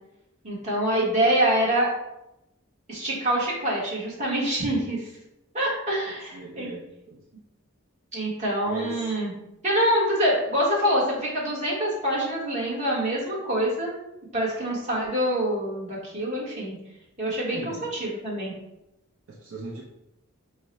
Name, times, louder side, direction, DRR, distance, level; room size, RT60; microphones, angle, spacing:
voice 1, 0.4-1.9 2.9-5.1 5.5-6.7 8.1-9.3 9.6-13.9 14.3-16.8 17.2-18.5, right 1 dB, 35° right, -5 dB, 1.3 m, -25 dB
voice 2, 6.1-6.8 7.1-7.2 8.6-9.1 17.5-17.9 19.3-19.8, right 2 dB, 70° right, -2 dB, 0.6 m, -39 dB
4.6 x 2.1 x 4.1 m, 0.89 s
head